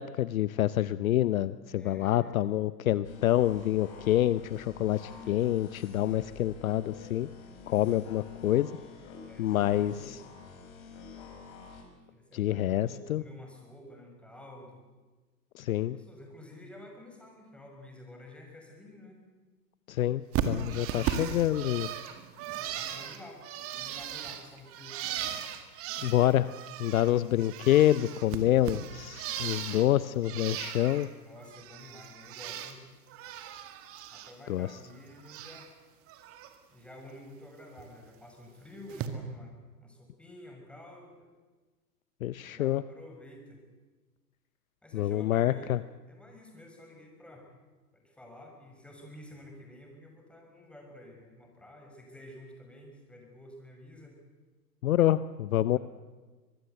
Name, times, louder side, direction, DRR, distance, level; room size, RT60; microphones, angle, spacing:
voice 1, 0.0-7.3 7.7-8.7 9.4-10.2 12.3-13.2 15.5-16.0 19.9-21.9 26.0-26.5 26.8-31.1 34.5-34.7 42.2-42.8 44.9-45.8 54.8-55.8, left 13 dB, 55° left, 16 dB, 0.8 m, -27 dB
voice 2, 1.8-2.3 4.8-5.7 9.3-10.2 12.1-14.8 15.7-19.2 22.3-23.4 23.8-25.0 25.8-26.1 31.2-32.8 34.1-35.7 36.7-39.5 39.8-41.3 42.5-43.6 44.8-45.8 46.1-47.5 47.9-54.1 55.6-55.8, left 1 dB, ahead, 1 dB, 5.7 m, -50 dB
sound 1, 3.0-11.8, left 5 dB, 35° left, 5.7 m, -48 dB
Bird, 20.3-27.1 27.4-29.9 30.2-31.1 31.4-32.8 33.1-34.3 34.6-35.7 36.1-36.5 37.8-37.9 38.9-39.1, right 9 dB, 25° right, 2.1 m, -37 dB
24.5 x 20.5 x 8.0 m, 1.3 s
hypercardioid pair, 120°, 49 cm